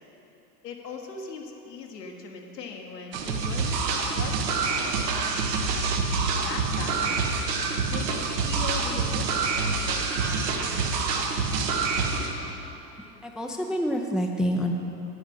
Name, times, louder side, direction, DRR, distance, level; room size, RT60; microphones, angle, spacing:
voice 1, 0.6-5.4 6.4-7.4 7.9-10.2, left 5 dB, 75° left, 2 dB, 1.5 m, -39 dB
sound 1, 3.1-12.3, right 4 dB, 70° right, 1.4 m, -26 dB
voice 2, 13.2-14.7, equal, ahead, 2 dB, 0.5 m, -27 dB
9.5 x 9.3 x 5.5 m, 3.0 s
hypercardioid pair, 90°, 49 cm